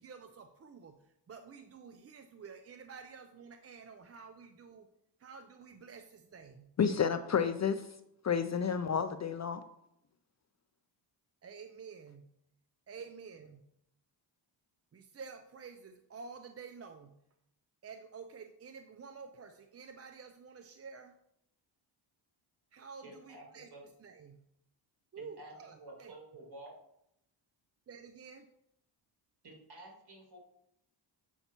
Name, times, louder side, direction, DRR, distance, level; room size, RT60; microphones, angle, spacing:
voice 1, 0.0-4.9 5.2-6.7 11.4-12.3 12.9-13.6 14.9-17.1 17.8-21.1 22.7-23.7 24.0-24.4 25.1-26.1 27.9-28.5, right 5 dB, 30° right, 6 dB, 0.5 m, -50 dB
voice 2, 6.8-8.0 8.2-9.6, left 7 dB, 40° left, 10 dB, 0.4 m, -30 dB
voice 3, 23.0-23.8 25.2-25.5 25.8-26.7 29.4-30.4, right 1 dB, 55° right, -1 dB, 2.3 m, -51 dB
8.0 x 5.4 x 2.9 m, 0.79 s
cardioid pair, 75°, 47 cm